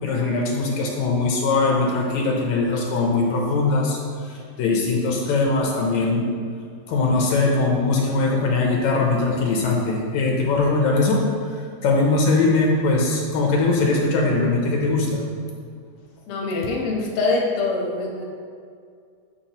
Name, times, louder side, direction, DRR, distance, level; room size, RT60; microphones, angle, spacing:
voice 1, 0.0-4.0 4.2-6.3 6.9-11.2 11.8-15.2, left 3 dB, 80° left, -1 dB, 2.2 m, -21 dB
voice 2, 16.3-18.2, left 3 dB, 60° left, -2 dB, 1.8 m, -24 dB
10.0 x 5.2 x 3.0 m, 2.2 s
omnidirectional pair, 3.3 m